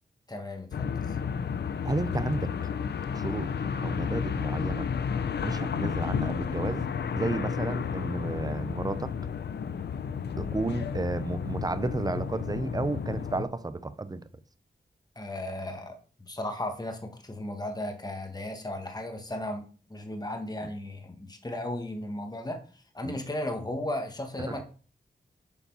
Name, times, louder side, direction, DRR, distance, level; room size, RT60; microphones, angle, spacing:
voice 1, 0.3-1.2 15.1-22.6 22.9-24.6, left 1 dB, 25° left, 1.5 m, -35 dB
sound 1, 0.7-13.4, left 6 dB, 80° left, 0.6 m, -32 dB
voice 2, 1.8-2.5 3.1-3.5 3.8-4.9 5.4-6.8 7.1-9.1 10.4-14.2 23.0-23.1 24.4-24.6, right 2 dB, 20° right, 0.7 m, -32 dB
7.2 x 4.3 x 5.5 m
cardioid pair, 70°, 17 cm